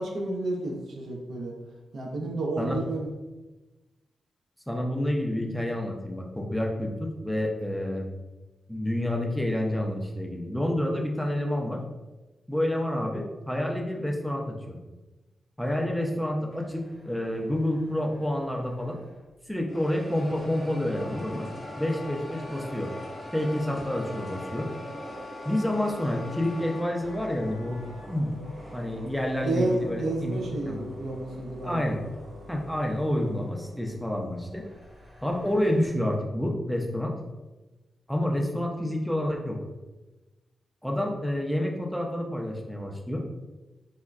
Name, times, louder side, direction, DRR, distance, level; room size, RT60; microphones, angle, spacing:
voice 1, 0.0-1.5 1.9-3.1 29.4-31.9, right 2 dB, 80° right, 0 dB, 0.5 m, -30 dB
voice 2, 4.7-8.1 8.7-11.8 12.5-14.8 15.6-19.0 19.5-21.5 21.8-22.9 23.3-24.7 25.4-28.3 28.7-30.4 30.7-30.9 31.6-32.0 32.5-34.6 35.2-37.1 38.1-39.6 40.8-43.3, left 1 dB, ahead, 0 dB, 0.4 m, -29 dB
sound 1, 16.5-19.3 19.7-35.9, equal, 35° right, 0.8 m, -44 dB
Wind instrument woodwind instrument, 20.5-28.1, left 4 dB, 60° right, 1.5 m, -45 dB
3.5 x 2.1 x 2.3 m, 1.1 s
cardioid pair, 85°, 0 cm